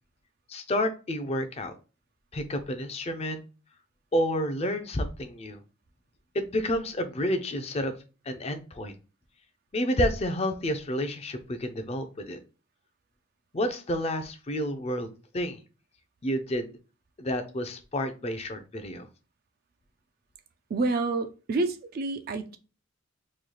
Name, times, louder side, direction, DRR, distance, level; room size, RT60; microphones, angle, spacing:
voice 1, 0.5-1.7 2.3-3.4 4.1-5.6 6.3-7.9 8.3-8.9 9.7-12.4 13.5-15.6 16.2-16.7 17.2-19.1, equal, 30° left, 0.5 m, -30 dB
voice 2, 20.7-22.6, right 3 dB, 50° right, 0.3 m, -28 dB
3.1 x 2.3 x 3.7 m
head